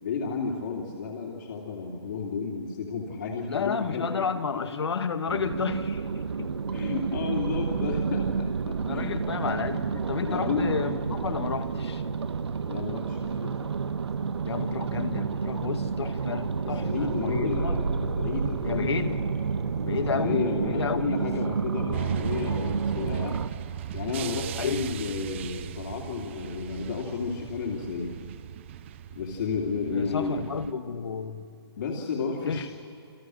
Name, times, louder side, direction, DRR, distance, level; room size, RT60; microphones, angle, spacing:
voice 1, 0.0-4.2 6.7-9.3 10.2-10.7 12.7-13.7 16.6-19.1 20.1-23.4 23.9-28.1 29.1-30.4 31.8-32.7, left 4 dB, 45° left, -2 dB, 3.0 m, -32 dB
voice 2, 3.5-6.5 8.9-12.0 14.4-17.8 18.6-19.2 19.9-21.3 24.6-25.0 29.9-31.5 32.4-32.7, left 6 dB, 75° left, 8 dB, 1.9 m, -31 dB
sound 1, 5.3-23.5, right 5 dB, 85° right, 1.4 m, -30 dB
sound 2, 21.9-30.7, right 11 dB, 25° right, 0.7 m, -37 dB
29.0 x 27.0 x 6.5 m, 2.4 s
hypercardioid pair, 165°, 14 cm